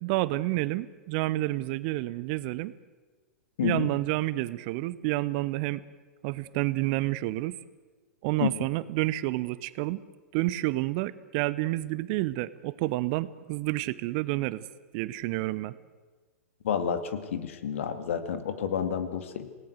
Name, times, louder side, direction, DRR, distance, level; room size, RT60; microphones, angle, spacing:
voice 1, 0.0-2.7 3.6-5.8 6.2-7.6 8.2-10.0 10.3-14.7 14.9-15.8, right 18 dB, 40° right, 18 dB, 0.9 m, -29 dB
voice 2, 3.6-3.9 8.4-8.5 16.6-19.5, left 8 dB, 60° left, 10 dB, 2.3 m, -30 dB
28.0 x 18.5 x 8.1 m, 1.3 s
figure-of-eight pair, 100°, 8 cm